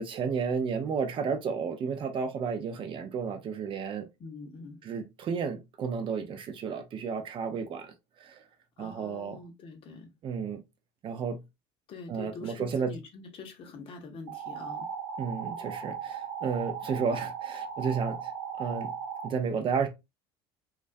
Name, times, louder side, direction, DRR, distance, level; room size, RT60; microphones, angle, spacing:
voice 1, 0.0-4.1 4.8-7.9 8.2-8.4 8.8-9.5 10.2-10.6 11.0-11.4 12.1-13.0 15.2-18.3 18.6-18.9 19.2-19.9, right 6 dB, 40° right, 0.5 m, -32 dB
voice 2, 4.2-4.8 8.8-10.1 11.9-14.9, left 4 dB, 45° left, 0.7 m, -44 dB
sound 1, 14.3-19.3, right 7 dB, 75° right, 0.9 m, -37 dB
2.2 x 2.2 x 2.5 m
supercardioid pair, 100°, 13 cm